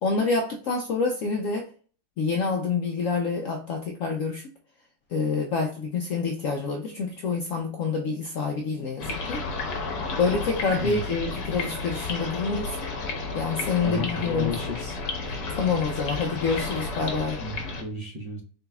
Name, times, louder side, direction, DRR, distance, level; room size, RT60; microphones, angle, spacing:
voice 1, 0.0-1.7 2.2-4.5 5.1-9.4 10.2-12.8 13.3-14.5 15.5-17.4, left 4 dB, 90° left, 2 dB, 0.7 m, -27 dB
sound 1, 9.0-17.8, left 3 dB, 60° left, 1.4 m, -32 dB
voice 2, 13.8-15.0 17.4-18.4, left 1 dB, 25° right, -4 dB, 0.9 m, -33 dB
3.9 x 3.9 x 2.3 m, 0.42 s
omnidirectional pair, 2.0 m